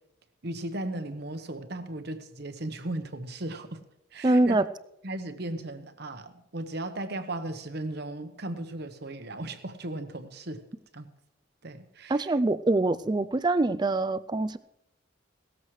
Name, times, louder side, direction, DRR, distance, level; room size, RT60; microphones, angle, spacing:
voice 1, 0.4-3.8 4.1-4.6 5.0-10.6 10.9-11.1 11.6-12.3, right 1 dB, 50° right, 9 dB, 1.0 m, -36 dB
voice 2, 4.2-4.6 12.1-14.6, right 2 dB, 20° right, 14 dB, 0.4 m, -24 dB
17.5 x 13.5 x 3.2 m, 0.85 s
head